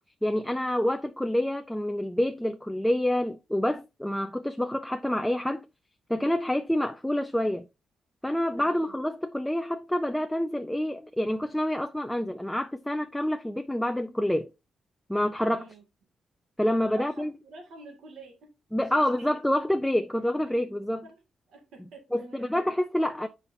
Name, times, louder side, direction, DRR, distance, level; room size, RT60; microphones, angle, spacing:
voice 1, 0.2-5.6 6.1-7.7 8.2-14.5 15.1-15.7 16.6-17.3 18.7-21.0 22.1-23.3, left 1 dB, 5° left, 0.4 m, -27 dB
voice 2, 8.6-9.0 15.5-15.8 16.9-18.5 18.8-19.4 20.5-20.6 21.0-21.2 21.5-22.5, right 3 dB, 85° right, 2.2 m, -49 dB
8.1 x 5.7 x 2.7 m
wide cardioid pair, 180°, 0 cm